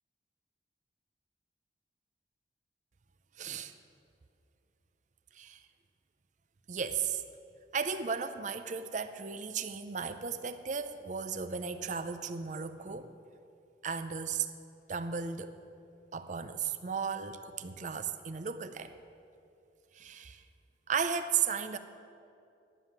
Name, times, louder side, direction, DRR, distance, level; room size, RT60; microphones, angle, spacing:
voice 1, 3.4-3.7 5.3-5.6 6.7-7.2 7.7-13.1 13.8-14.5 14.9-15.6 16.1-18.9 19.9-20.4 20.9-21.8, right 6 dB, 45° right, 10 dB, 0.5 m, -35 dB
11.0 x 7.4 x 8.8 m, 2.6 s
head